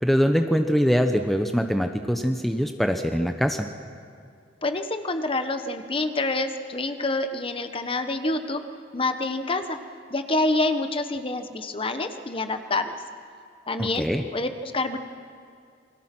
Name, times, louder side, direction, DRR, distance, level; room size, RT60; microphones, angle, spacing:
voice 1, 0.0-3.7 13.8-14.2, equal, ahead, 6 dB, 0.9 m, -23 dB
voice 2, 4.6-8.7 8.9-9.8 10.1-13.0 13.7-15.0, left 2 dB, 30° left, 8 dB, 1.3 m, -27 dB
28.0 x 23.0 x 6.1 m, 2.4 s
head